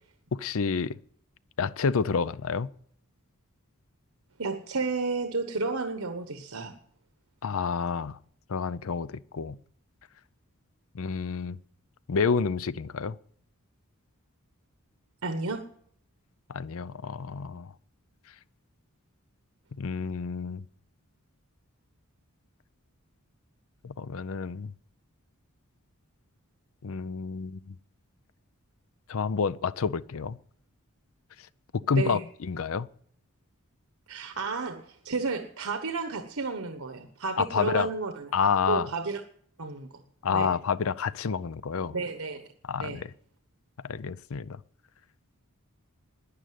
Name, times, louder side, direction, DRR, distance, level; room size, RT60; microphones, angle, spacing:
voice 1, 0.3-1.0 1.6-2.7 7.4-8.2 8.5-9.6 10.9-11.6 12.1-13.2 16.5-17.7 19.8-20.6 23.8-24.7 26.8-27.8 29.1-30.4 31.9-32.9 37.4-37.9 38.3-38.9 40.2-42.0 42.6-43.1 43.8-44.6, left 5 dB, 65° left, 0.5 m, -29 dB
voice 2, 4.4-6.7 15.2-15.6 31.9-32.2 34.1-38.3 38.7-39.2 39.6-39.9 40.3-40.5 41.9-42.4 42.8-43.0, right 4 dB, 70° right, 1.2 m, -32 dB
11.5 x 10.0 x 9.4 m
head